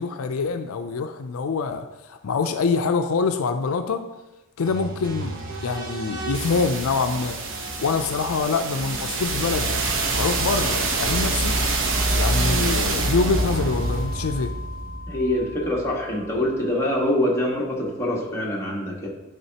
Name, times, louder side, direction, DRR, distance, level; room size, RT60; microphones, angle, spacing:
voice 1, 0.0-4.0 4.6-7.4 7.8-9.8 10.1-11.6 12.1-14.5, left 4 dB, 80° left, 7 dB, 0.4 m, -25 dB
sound 1, 4.6-16.5, right 2 dB, 65° right, 0.9 m, -26 dB
voice 2, 15.1-19.1, left 1 dB, 15° left, -4 dB, 1.4 m, -24 dB
11.0 x 4.9 x 2.8 m, 1.0 s
head